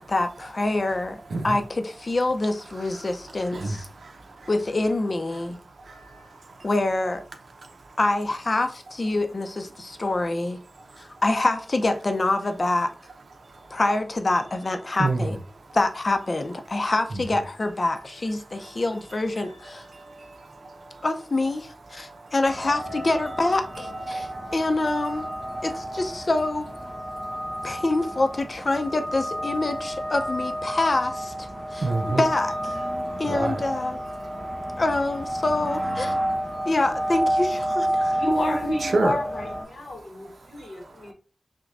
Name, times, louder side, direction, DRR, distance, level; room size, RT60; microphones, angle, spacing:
voice 1, 0.0-3.9 4.5-5.6 6.6-7.2 8.0-10.6 11.0-12.9 13.7-15.4 15.7-19.9 21.0-25.3 25.6-26.7 27.6-31.5 31.7-32.7 33.2-34.0 34.8-36.1 36.7-38.2, left 2 dB, 50° left, 0.5 m, -26 dB
voice 2, 3.5-4.5 5.8-6.7 7.6-7.9 10.9-11.0 13.6-13.7 15.0-15.4 18.6-18.8 19.4-19.5 19.9-21.1 22.0-22.3 24.1-24.5 27.2-27.4 31.7-32.2 33.0-33.6 34.2-34.8 36.5-36.7 38.9-39.1 40.6-40.9, right 3 dB, 85° right, 0.6 m, -31 dB
sound 1, 22.4-39.6, right 1 dB, 50° right, 1.6 m, -30 dB
voice 3, 38.1-41.1, left 1 dB, 80° left, 1.0 m, -30 dB
5.9 x 2.2 x 2.5 m
wide cardioid pair, 75°, 0 cm